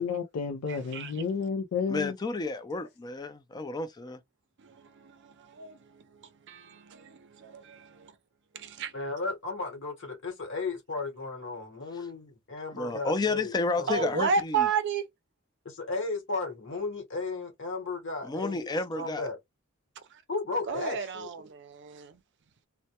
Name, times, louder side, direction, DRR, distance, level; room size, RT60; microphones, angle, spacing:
voice 1, 0.0-2.1, left 5 dB, 85° left, 0.4 m, -31 dB
voice 2, 0.7-1.3 4.6-6.0 6.5-8.1 8.5-8.9 13.9-15.0 20.7-22.2, right 5 dB, 60° right, 0.5 m, -33 dB
voice 3, 1.9-4.2 11.9-12.1 12.7-14.7 18.2-19.3, left 3 dB, 20° left, 0.4 m, -31 dB
voice 4, 8.9-14.1 15.6-18.7 18.9-19.4 20.3-21.3, left 3 dB, 65° left, 1.0 m, -35 dB
2.1 x 2.1 x 2.7 m
head